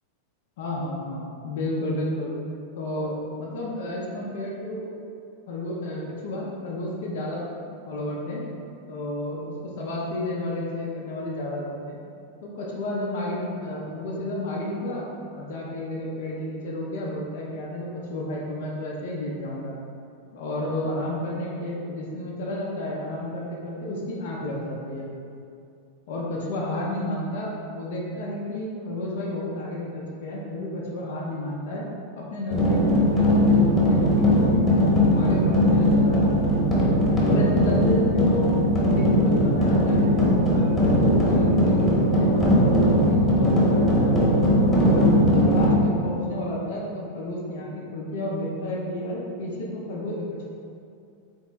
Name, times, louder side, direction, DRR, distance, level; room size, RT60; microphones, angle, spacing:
voice 1, 0.6-2.3 2.8-4.9 5.5-7.4 7.7-8.4 8.9-9.4 9.8-12.0 12.4-15.0 15.4-19.7 20.3-25.1 26.1-31.8 32.2-34.8 35.1-36.6 37.2-38.5 38.9-40.2 40.5-44.2 44.9-50.4, left 1 dB, 55° left, -4 dB, 0.6 m, -31 dB
sound 1, 32.5-45.7, equal, 10° left, 1.0 m, -19 dB
4.0 x 3.5 x 3.2 m, 2.5 s
figure-of-eight pair, 90°, 0 cm